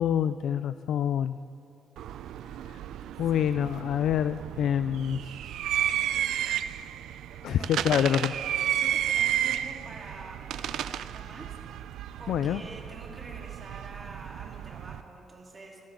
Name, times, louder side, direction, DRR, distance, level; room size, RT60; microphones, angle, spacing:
voice 1, 0.0-1.4 3.2-5.5 7.4-8.3 12.3-12.6, left 9 dB, 75° left, 13 dB, 0.3 m, -26 dB
sound 1, 2.0-15.0, right 11 dB, 80° right, 0.4 m, -32 dB
voice 2, 7.4-8.2 8.7-11.5 12.2-15.8, right 2 dB, 30° right, -3 dB, 3.8 m, -46 dB
24.0 x 13.0 x 3.9 m, 2.5 s
cardioid pair, 90°, 0 cm